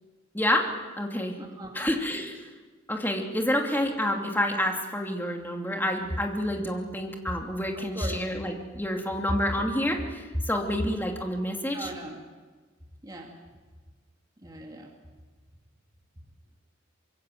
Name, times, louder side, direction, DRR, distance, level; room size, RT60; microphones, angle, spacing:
voice 1, 0.3-0.7 1.0-1.4 1.7-2.4 2.9-11.9, left 1 dB, 10° left, 2 dB, 2.8 m, -28 dB
voice 2, 1.4-1.9 7.7-8.2 11.7-12.2 13.0-13.4 14.4-14.9, right 1 dB, 20° right, 0 dB, 2.4 m, -40 dB
25.5 x 22.5 x 7.9 m, 1.4 s
head